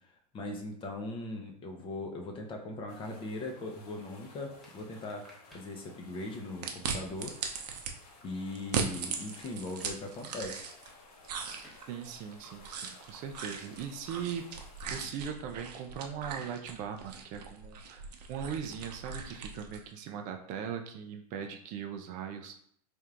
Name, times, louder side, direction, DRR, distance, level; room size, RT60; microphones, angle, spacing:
voice 1, 0.3-7.3 8.2-10.7 13.4-13.5, left 2 dB, 25° left, 2 dB, 0.7 m, -40 dB
sound 1, 2.9-14.9, left 3 dB, 70° left, 1.2 m, -57 dB
sound 2, 4.6-5.7 7.1-8.1 9.4-10.0 11.6-11.8, equal, ahead, 0.9 m, -57 dB
sound 3, 6.6-7.9 8.5-10.9 11.2-19.9, right 6 dB, 75° right, 0.7 m, -39 dB
voice 2, 11.9-14.5 14.9-22.6, right 8 dB, 40° right, 5 dB, 0.5 m, -39 dB
4.3 x 3.4 x 2.5 m, 0.63 s
hypercardioid pair, 125°, 21 cm